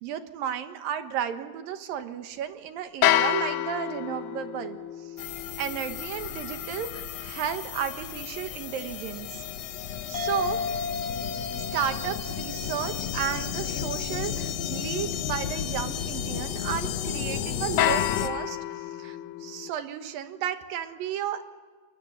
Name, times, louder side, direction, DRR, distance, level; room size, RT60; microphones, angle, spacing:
voice 1, 0.0-5.3 5.6-9.4 10.1-10.6 11.5-21.5, right 9 dB, 75° right, 8 dB, 3.1 m, -33 dB
sound 1, 3.0-9.2 17.8-19.7, left 12 dB, 80° left, 2.7 m, -30 dB
sound 2, 5.2-18.3, left 9 dB, 65° left, 1.7 m, -33 dB
sound 3, 10.1-15.0, left 5 dB, 20° left, 2.8 m, -35 dB
30.0 x 21.5 x 7.2 m, 1.5 s
omnidirectional pair, 4.1 m